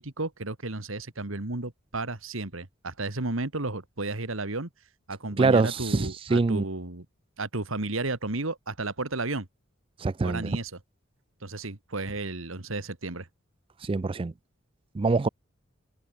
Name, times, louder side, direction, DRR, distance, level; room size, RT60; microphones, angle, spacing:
voice 1, 0.0-4.7 5.1-7.1 7.4-9.5 10.2-10.8 11.4-13.3, right 2 dB, 75° right, 2.3 m, -33 dB
voice 2, 5.4-6.6 10.0-10.6 13.8-14.3 14.9-15.3, right 3 dB, 25° right, 0.4 m, -24 dB
head